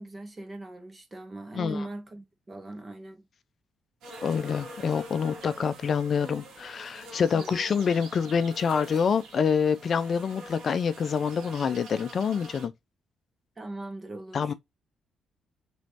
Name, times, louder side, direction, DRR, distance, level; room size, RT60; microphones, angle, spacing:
voice 1, 0.0-3.2 7.3-7.7 13.6-14.5, right 1 dB, 25° right, 1.1 m, -40 dB
sound 1, 4.0-12.7, right 1 dB, 75° right, 1.1 m, -45 dB
voice 2, 4.2-12.7 14.3-14.5, left 6 dB, 50° left, 0.3 m, -26 dB
3.1 x 3.1 x 2.8 m
cardioid pair, 90°, 0 cm